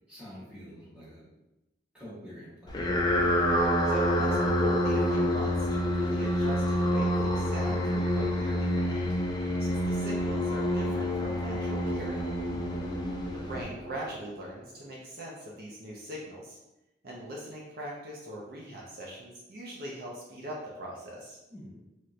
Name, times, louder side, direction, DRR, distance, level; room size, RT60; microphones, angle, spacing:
voice 1, 0.1-1.3 1.9-2.8 21.5-21.8, equal, 5° right, -9 dB, 1.2 m, -46 dB
sound 1, 2.7-14.1, equal, 20° left, 0.3 m, -27 dB
voice 2, 3.9-9.1 9.6-12.2 13.3-16.6 17.0-21.4, right 1 dB, 50° right, -3 dB, 0.5 m, -41 dB
3.1 x 2.8 x 2.4 m, 0.95 s
head